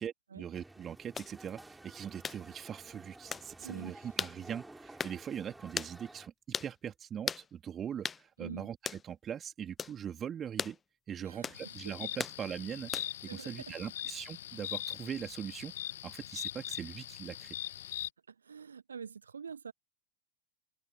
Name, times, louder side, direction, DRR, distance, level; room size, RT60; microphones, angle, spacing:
voice 1, 0.0-6.3 6.6-10.8 11.1-12.9 13.2-15.7 16.0-17.6, right 8 dB, 25° right, 2.9 m, -41 dB
sound 1, 0.5-6.3, right 2 dB, 5° right, 5.0 m, -53 dB
sound 2, 1.2-1.3 2.2-2.4 3.3-3.5 4.2-4.4 5.0-5.2 5.8-5.9 6.5-6.7 7.3-7.5 8.0-8.2 8.9-9.0 9.8-10.0 10.6-10.8 11.4-11.6 12.2-12.4 12.9-13.2, left 6 dB, 20° left, 0.4 m, -37 dB
voice 2, 3.6-3.9 8.4-8.7 11.2-12.0 13.3-13.9 18.3-19.7, right 6 dB, 70° right, 0.9 m, -46 dB
sound 3, 11.5-18.1, left 12 dB, 60° left, 1.7 m, -41 dB
open air
figure-of-eight pair, 90°, 0 cm